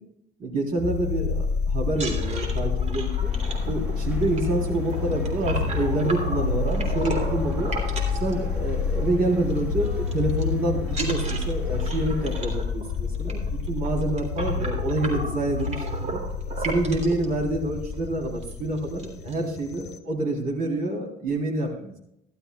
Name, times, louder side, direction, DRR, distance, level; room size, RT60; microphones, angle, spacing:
voice 1, 0.4-3.3 3.7-7.7 8.2-16.2 16.6-22.0, right 2 dB, 60° right, 0 dB, 3.7 m, -27 dB
sound 1, 0.8-20.0, left 5 dB, 75° left, 0.9 m, -29 dB
sound 2, 1.9-9.0 9.3-9.6 9.8-10.4 10.9-17.2 17.9-18.0 18.3-18.5 18.8-19.3, right 2 dB, 40° right, 3.4 m, -35 dB
sound 3, 3.2-12.4, left 1 dB, 10° right, 5.0 m, -40 dB
16.0 x 12.5 x 2.4 m, 0.78 s
cardioid pair, 110°, 17 cm